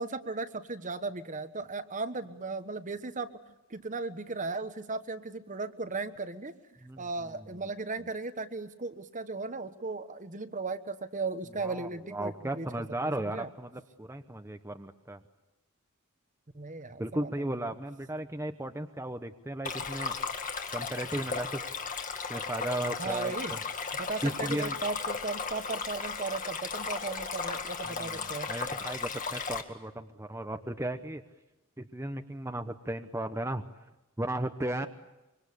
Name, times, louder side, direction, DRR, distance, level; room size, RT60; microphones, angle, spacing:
voice 1, 0.0-3.3 3.7-6.5 7.0-12.7 13.0-13.5 16.5-17.3 23.0-23.6 24.0-28.5, right 3 dB, 35° right, 10 dB, 1.2 m, -36 dB
voice 2, 6.8-7.7 11.6-15.2 17.0-20.2 20.7-21.6 22.3-23.6 24.2-24.8 27.9-31.2 31.8-33.6 34.2-34.9, right 1 dB, 10° right, 6 dB, 1.0 m, -35 dB
Stream, 19.6-29.6, left 5 dB, 35° left, 2.0 m, -35 dB
25.5 x 24.5 x 8.5 m, 0.99 s
head